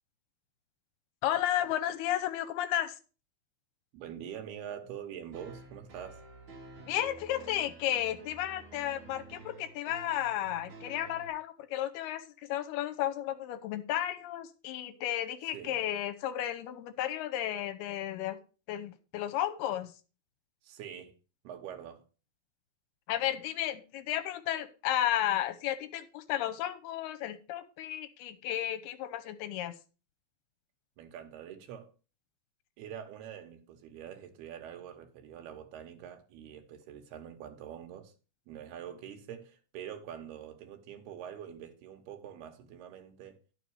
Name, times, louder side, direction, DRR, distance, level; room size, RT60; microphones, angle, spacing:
voice 1, 1.2-3.0 6.9-18.4 18.7-19.9 23.1-29.7, left 12 dB, 80° left, 2.7 m, -33 dB
voice 2, 3.9-6.2 15.5-15.9 20.6-21.2 21.4-22.1 31.0-31.9 32.8-38.1 38.5-43.4, right 9 dB, 75° right, 3.1 m, -45 dB
sound 1, 5.3-11.3, right 3 dB, 50° right, 3.1 m, -51 dB
11.0 x 6.5 x 4.7 m
omnidirectional pair, 4.7 m